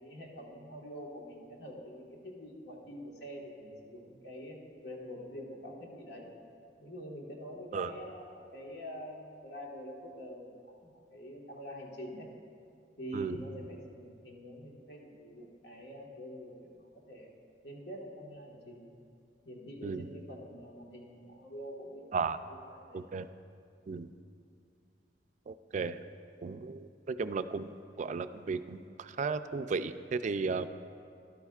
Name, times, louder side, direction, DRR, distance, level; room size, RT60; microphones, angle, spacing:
voice 1, 0.0-6.3 6.8-12.3 13.0-17.3 17.6-18.9 19.4-22.1 22.5-23.0, equal, 75° left, -1 dB, 1.6 m, -46 dB
voice 2, 22.9-23.3 23.9-24.1 25.5-26.0 26.4-27.7 28.0-30.7, right 4 dB, 45° right, 11 dB, 0.3 m, -34 dB
13.0 x 11.5 x 2.4 m, 2.3 s
head